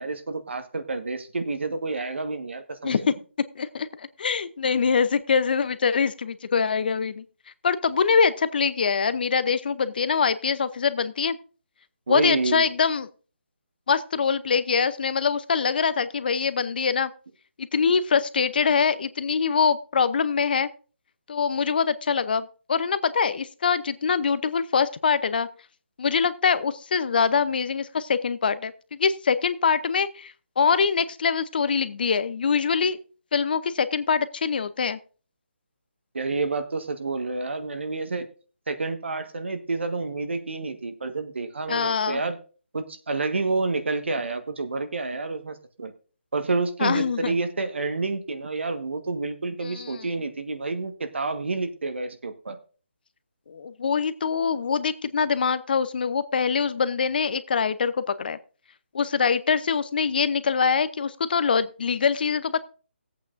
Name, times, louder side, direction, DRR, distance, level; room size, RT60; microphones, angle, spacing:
voice 1, 0.0-2.9 12.1-12.7 36.1-38.3 38.7-42.4 42.7-45.9 46.3-52.6, right 3 dB, 70° right, 8 dB, 1.5 m, -29 dB
voice 2, 3.5-7.2 7.6-11.4 12.1-13.1 13.9-17.1 17.6-20.7 21.3-25.5 26.0-33.0 33.3-35.0 41.7-42.2 46.8-47.3 49.6-50.1 53.5-58.4 58.9-62.6, left 6 dB, 50° left, 14 dB, 0.7 m, -24 dB
18.0 x 8.4 x 2.6 m, 0.37 s
figure-of-eight pair, 155°, 6 cm